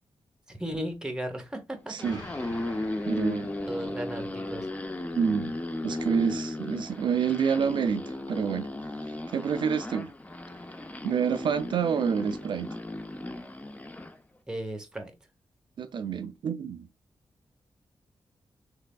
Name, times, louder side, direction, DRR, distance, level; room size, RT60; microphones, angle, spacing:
voice 1, 0.5-1.9 3.7-4.7 14.5-15.1, right 1 dB, 10° right, 0.8 m, -35 dB
sound 1, 1.8-14.2, left 1 dB, 15° left, 0.5 m, -35 dB
voice 2, 1.9-2.2 3.1-3.5 5.1-5.5 5.8-8.7 9.0-10.1 11.0-12.8 15.8-16.9, right 7 dB, 65° right, 0.4 m, -28 dB
Explosion, 2.0-4.2, left 2 dB, 50° left, 1.0 m, -46 dB
3.3 x 3.2 x 2.2 m
wide cardioid pair, 110°, 9 cm